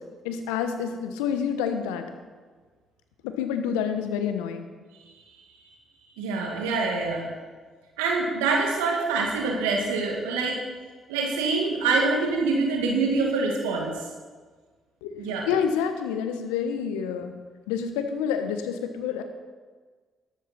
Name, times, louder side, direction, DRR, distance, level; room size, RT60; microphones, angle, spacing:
voice 1, 0.2-2.1 3.2-4.6 15.0-15.1 15.5-17.3 17.7-19.2, left 7 dB, 80° left, 7 dB, 1.1 m, -28 dB
voice 2, 6.2-7.3 8.0-10.6 11.1-13.9 15.2-15.5, right 3 dB, 85° right, 0 dB, 2.0 m, -25 dB
13.0 x 12.5 x 4.3 m, 1.5 s
hypercardioid pair, 45°, 0 cm